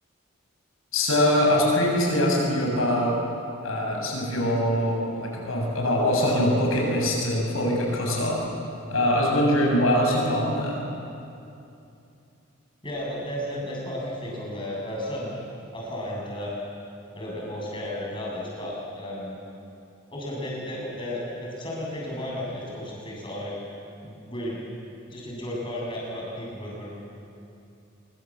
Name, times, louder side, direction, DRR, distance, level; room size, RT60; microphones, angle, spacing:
voice 1, 0.9-3.2 3.6-8.4 8.9-10.8, left 1 dB, 85° left, -1 dB, 7.4 m, -23 dB
voice 2, 12.8-15.3 15.7-16.5 17.1-19.4 20.1-23.5 24.0-24.6 25.1-26.9, left 1 dB, 25° left, -4 dB, 7.9 m, -33 dB
25.5 x 24.0 x 7.6 m, 2.7 s
head